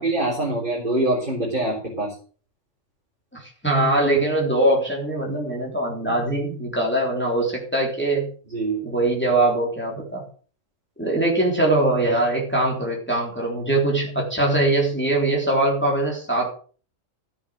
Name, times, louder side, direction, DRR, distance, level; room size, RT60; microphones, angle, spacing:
voice 1, 0.0-2.2 8.5-8.8, right 2 dB, 40° right, -3 dB, 3.7 m, -24 dB
voice 2, 3.3-8.3 8.8-10.2 11.0-16.5, right 2 dB, 10° left, -2 dB, 3.5 m, -22 dB
14.0 x 7.5 x 6.3 m, 0.41 s
omnidirectional pair, 1.3 m